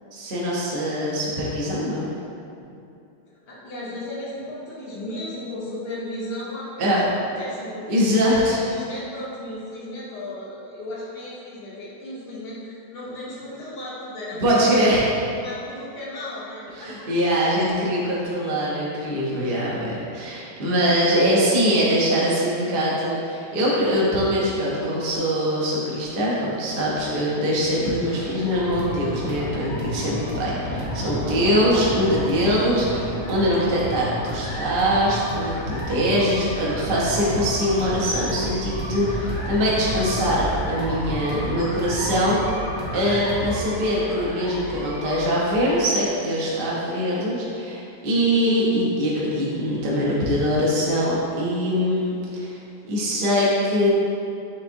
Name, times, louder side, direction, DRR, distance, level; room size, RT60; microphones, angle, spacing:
voice 1, 0.1-2.1 6.8-7.0 7.9-8.6 14.4-15.1 16.8-42.4 42.9-52.6 52.9-53.9, equal, 60° right, -6 dB, 0.5 m, -22 dB
voice 2, 3.4-8.1 8.4-14.9 15.3-17.1, left 1 dB, 65° left, -6 dB, 1.2 m, -35 dB
sound 1, 28.0-45.8, left 1 dB, 90° left, 1.6 m, -33 dB
sound 2, 28.5-43.6, equal, 90° right, 1.5 m, -34 dB
5.4 x 3.3 x 2.6 m, 2.6 s
omnidirectional pair, 2.1 m